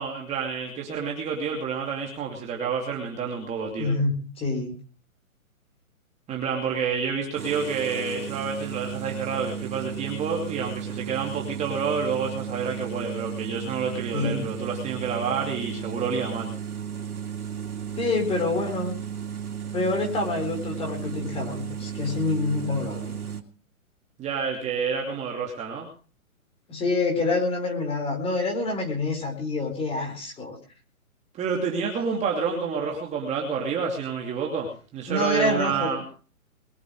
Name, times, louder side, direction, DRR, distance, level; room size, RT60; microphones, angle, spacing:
voice 1, 0.0-3.9 6.3-16.5 24.2-25.9 31.4-36.0, right 5 dB, 15° right, -1 dB, 2.6 m, -29 dB
voice 2, 3.8-4.7 14.1-14.5 18.0-18.9 19.7-23.2 26.7-30.6 35.1-36.0, left 3 dB, 15° left, 3 dB, 4.2 m, -27 dB
sound 1, 7.4-23.4, right 8 dB, 90° right, 2.9 m, -34 dB
22.0 x 7.9 x 6.3 m, 0.40 s
hypercardioid pair, 140°, 43 cm